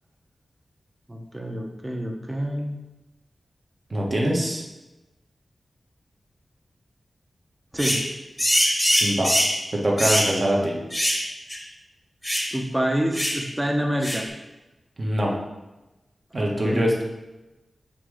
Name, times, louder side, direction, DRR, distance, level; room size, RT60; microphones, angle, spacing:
voice 1, 1.1-2.8 7.7-8.1 12.5-14.3 16.4-16.9, equal, 15° right, 1 dB, 0.8 m, -27 dB
voice 2, 3.9-4.6 9.0-9.3 9.7-10.8 15.0-15.3 16.3-17.0, equal, 40° right, -2 dB, 1.3 m, -23 dB
sound 1, 7.8-8.1 8.4-9.6 10.0-10.3 10.9-11.2 11.5-11.6 12.2-12.5 13.1-13.4 14.0-14.3, equal, 5° left, 1.1 m, -22 dB
7.3 x 3.7 x 4.9 m, 1.1 s
wide cardioid pair, 115°, 0 cm